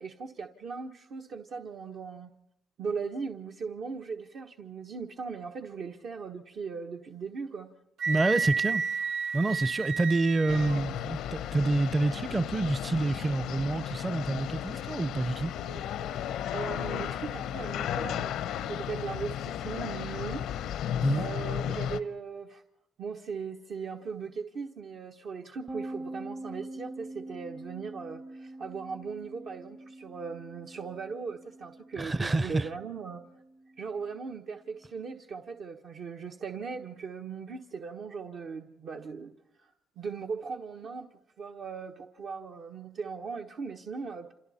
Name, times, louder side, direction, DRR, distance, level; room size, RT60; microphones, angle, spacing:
voice 1, 0.0-2.3 2.8-7.7 16.5-18.4 18.7-20.5 21.1-22.6 23.0-33.2 33.8-39.3 39.6-41.1 41.4-44.3, right 5 dB, 65° right, 1.3 m, -38 dB
Wind instrument woodwind instrument, 8.0-10.8, right 5 dB, 80° right, 1.4 m, -31 dB
voice 2, 8.1-8.8 9.3-15.5 21.0-21.2 32.0-32.7, right 2 dB, 25° right, 0.7 m, -28 dB
sound 1, 10.5-22.0, left 10 dB, 85° left, 0.7 m, -34 dB
sound 2, 25.7-35.1, right 2 dB, 45° right, 1.5 m, -45 dB
28.5 x 26.5 x 4.3 m
cardioid pair, 90°, 0 cm